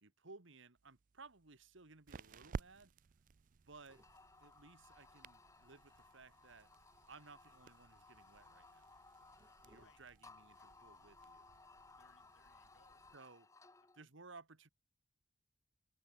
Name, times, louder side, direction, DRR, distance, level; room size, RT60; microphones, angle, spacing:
voice 1, 0.0-2.9 3.4-4.0 4.4-6.7 7.1-8.9 9.6-11.4 13.1-13.5 13.9-14.7, right 3 dB, 75° right, 1.8 m, -59 dB
sound 1, 0.8-13.2, right 4 dB, 40° right, 0.3 m, -55 dB
sound 2, 3.4-5.7 6.8-13.8, equal, 25° right, 5.6 m, -77 dB
sound 3, 3.9-14.0, left 3 dB, 15° left, 0.8 m, -63 dB
voice 2, 9.7-10.0 10.6-10.9 11.9-13.2 13.8-13.9, left 4 dB, 75° left, 2.5 m, -73 dB
head